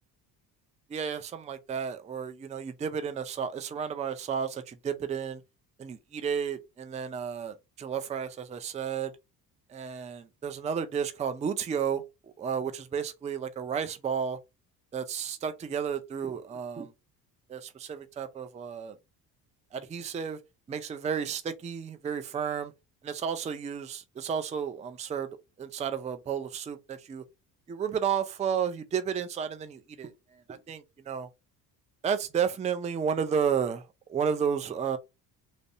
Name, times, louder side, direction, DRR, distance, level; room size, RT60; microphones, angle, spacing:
voice 1, 0.9-5.4 5.8-9.1 9.7-12.0 12.4-14.4 14.9-16.9 17.5-19.0 19.7-20.4 20.7-22.7 23.0-25.3 25.6-27.2 27.7-30.1 30.5-31.3 32.0-33.8 34.1-35.0, right 7 dB, 15° right, 0.4 m, -32 dB
2.6 x 2.1 x 2.6 m
hypercardioid pair, 55°, 49 cm